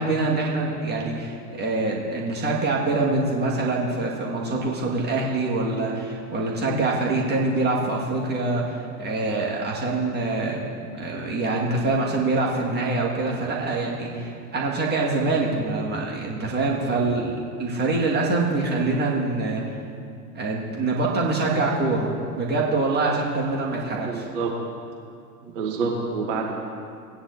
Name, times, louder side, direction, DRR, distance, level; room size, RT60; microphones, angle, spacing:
voice 1, 0.0-10.7 11.0-19.6 20.3-24.3, right 3 dB, 20° right, -3 dB, 2.1 m, -25 dB
voice 2, 24.0-24.5 25.5-26.5, right 4 dB, 50° right, -1 dB, 1.9 m, -27 dB
18.0 x 9.8 x 2.8 m, 2.3 s
figure-of-eight pair, 85°, 47 cm